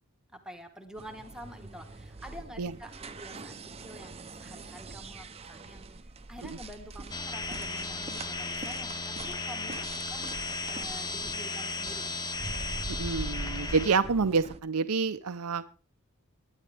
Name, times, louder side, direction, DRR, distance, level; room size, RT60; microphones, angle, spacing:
voice 1, 0.3-6.0 6.3-12.2, equal, 5° right, 6 dB, 1.3 m, -48 dB
sound 1, 1.0-14.6, right 2 dB, 30° right, 0.7 m, -43 dB
sound 2, 7.1-14.0, left 3 dB, 20° left, 0.8 m, -35 dB
voice 2, 12.9-15.7, right 4 dB, 75° right, 11 dB, 0.7 m, -28 dB
21.0 x 9.7 x 3.4 m, 0.34 s
head